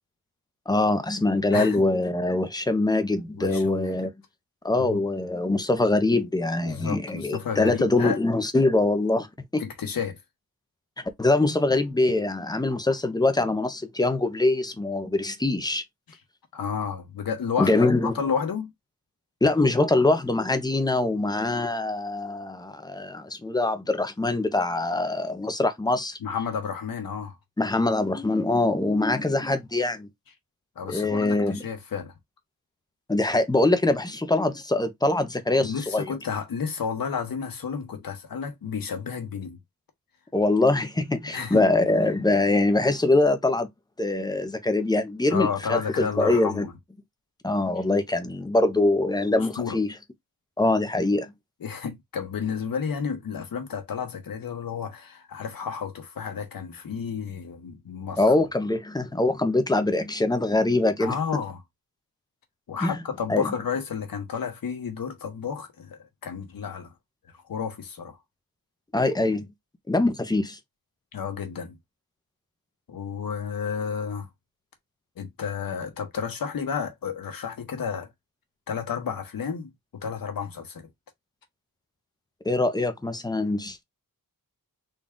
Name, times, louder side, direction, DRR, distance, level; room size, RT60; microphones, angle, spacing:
voice 1, 0.7-4.1 4.6-9.3 9.5-9.6 11.2-15.8 17.6-18.1 19.4-26.2 27.6-30.1 30.8-31.7 33.1-36.1 40.3-43.7 44.0-46.7 47.4-49.9 50.6-51.3 58.2-61.4 62.8-62.9 63.3-63.5 68.9-69.5 69.9-70.6 82.4-83.8, left 2 dB, 10° left, 0.5 m, -23 dB
voice 2, 1.5-1.9 3.3-4.1 4.8-5.0 5.5-5.6 6.6-8.2 9.6-10.2 16.1-16.2 16.5-18.7 26.2-27.4 30.8-32.1 35.6-39.6 41.3-41.7 45.3-46.7 49.4-49.8 51.6-58.3 61.0-61.6 62.7-66.9 67.5-68.2 71.1-71.8 72.9-74.3 75.2-78.1 78.7-80.9, left 6 dB, 70° left, 1.1 m, -31 dB
3.9 x 2.3 x 3.6 m
wide cardioid pair, 150°, 35 cm